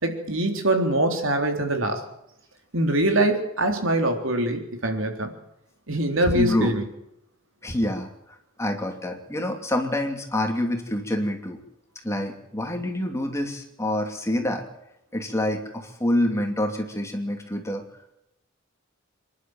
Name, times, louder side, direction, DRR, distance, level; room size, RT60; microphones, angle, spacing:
voice 1, 0.0-2.0 2.7-5.3 5.9-6.8, right 1 dB, 80° right, 5 dB, 3.7 m, -23 dB
voice 2, 6.2-6.7 7.6-11.6 12.0-14.7 15.1-17.8, left 1 dB, 15° left, 4 dB, 2.8 m, -27 dB
26.5 x 11.5 x 9.1 m, 0.82 s
head